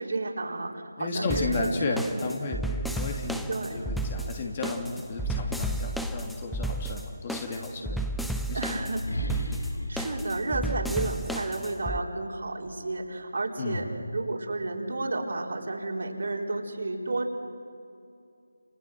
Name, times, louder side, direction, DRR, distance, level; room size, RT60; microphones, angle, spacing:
voice 1, 0.0-2.0 3.5-3.9 8.5-9.1 9.9-13.9 14.1-17.3, right 2 dB, 55° right, 0 dB, 4.4 m, -32 dB
voice 2, 1.0-8.0 8.5-8.8 9.3-9.4 13.6-13.9, left 3 dB, 30° left, 1 dB, 3.0 m, -33 dB
sound 1, 1.3-12.0, right 1 dB, ahead, 0.6 m, -33 dB
sound 2, 3.2-6.9 7.8-11.5, left 1 dB, 75° left, 4.4 m, -37 dB
30.0 x 29.0 x 6.4 m, 2.5 s
figure-of-eight pair, 160°, 0 cm